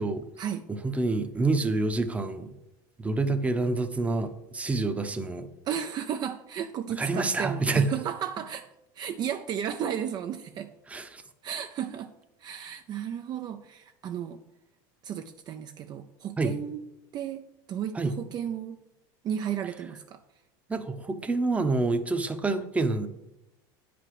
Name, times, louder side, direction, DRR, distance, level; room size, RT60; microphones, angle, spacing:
voice 1, 0.7-2.5 3.0-5.5 7.0-7.9 10.9-11.2 16.4-16.5 17.9-18.1 20.7-23.1, right 3 dB, 10° right, 7 dB, 0.9 m, -27 dB
voice 2, 5.7-8.7 9.0-10.7 11.4-12.1 12.4-14.4 15.0-16.8 17.1-18.8 19.2-20.2, right 9 dB, 40° right, 6 dB, 0.6 m, -34 dB
9.1 x 5.1 x 7.7 m, 0.90 s
supercardioid pair, 125°, 11 cm